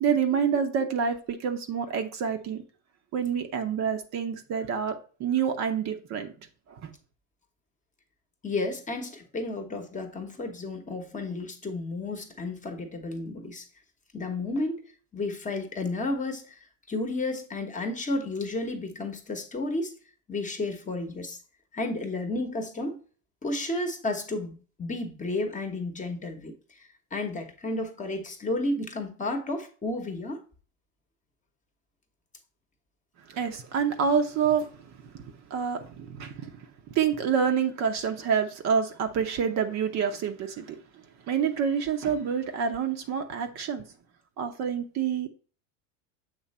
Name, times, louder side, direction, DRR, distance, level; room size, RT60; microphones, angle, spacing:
voice 1, 0.0-2.6 3.1-6.3 33.3-34.7 35.1-36.5 36.9-40.8 41.3-43.8 44.4-45.3, right 7 dB, 40° right, 0.8 m, -27 dB
voice 2, 8.4-13.6 14.1-14.8 15.1-16.6 16.9-19.9 20.3-21.4 21.7-23.0 23.4-30.4, left 2 dB, 20° left, 1.0 m, -32 dB
7.5 x 3.1 x 4.2 m
supercardioid pair, 110°, 40 cm